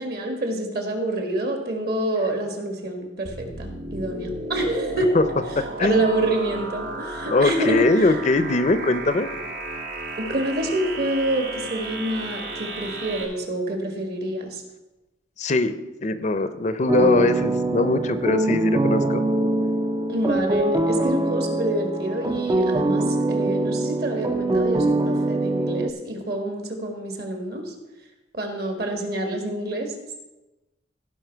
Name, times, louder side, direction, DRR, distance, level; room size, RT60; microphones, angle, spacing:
voice 1, 0.0-5.1 5.8-7.8 10.2-14.6 20.1-27.7 28.3-29.9, right 1 dB, 60° right, 3 dB, 1.8 m, -27 dB
sound 1, 3.2-13.2, right 2 dB, 80° right, 1.7 m, -34 dB
voice 2, 5.6-6.0 7.3-9.3 15.4-15.8 16.0-19.2, left 2 dB, 40° left, 12 dB, 0.5 m, -21 dB
sound 2, 16.9-25.9, right 2 dB, 20° right, 0.4 m, -23 dB
16.0 x 5.4 x 4.5 m, 1.1 s
head